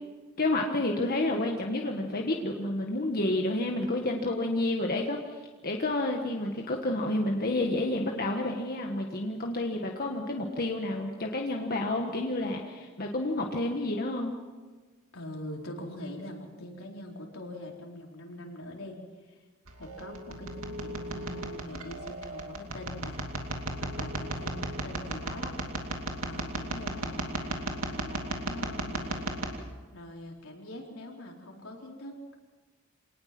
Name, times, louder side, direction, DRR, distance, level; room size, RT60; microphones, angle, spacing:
voice 1, 0.4-14.3, left 2 dB, 45° left, 1 dB, 1.6 m, -30 dB
voice 2, 15.1-19.4 19.8-25.6 26.2-32.3, left 1 dB, 80° left, 0 dB, 4.3 m, -43 dB
sound 1, 19.7-29.5, right 1 dB, 85° right, 2.6 m, -36 dB
26.0 x 19.0 x 6.1 m, 1.4 s
head